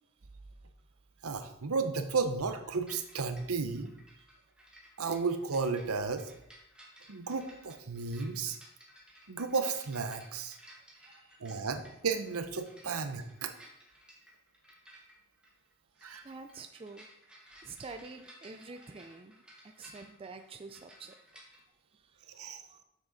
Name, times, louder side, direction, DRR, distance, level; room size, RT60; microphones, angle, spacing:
voice 1, 1.2-3.9 5.0-6.3 7.1-8.6 9.3-10.6 11.4-13.5 16.0-16.2 22.3-22.6, right 4 dB, 75° right, 9 dB, 0.8 m, -33 dB
sound 1, 2.9-21.6, equal, 5° right, 1.4 m, -57 dB
voice 2, 10.9-11.7 12.8-12.9 16.2-17.1 17.6-22.8, right 4 dB, 25° right, 7 dB, 0.4 m, -49 dB
7.3 x 6.3 x 4.1 m, 0.80 s
head